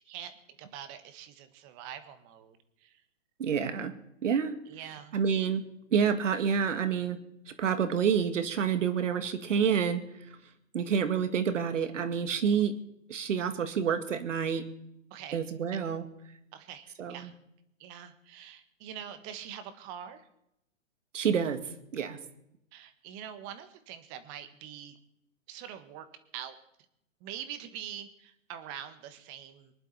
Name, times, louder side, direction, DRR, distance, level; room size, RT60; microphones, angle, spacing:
voice 1, 0.6-2.9 4.7-5.2 15.1-15.4 16.5-17.3 17.8-20.3 22.7-25.0 25.5-26.1 26.3-26.6 27.2-29.7, right 9 dB, 30° right, 10 dB, 1.7 m, -44 dB
voice 2, 3.4-3.9 4.2-4.6 5.1-5.6 5.9-7.2 7.6-10.0 10.7-12.7 13.1-14.6 15.3-16.0 17.0-17.3 21.1-21.6 21.9-22.2, right 7 dB, 65° right, 10 dB, 2.2 m, -28 dB
24.5 x 11.0 x 4.3 m, 0.80 s
hypercardioid pair, 135°, 39 cm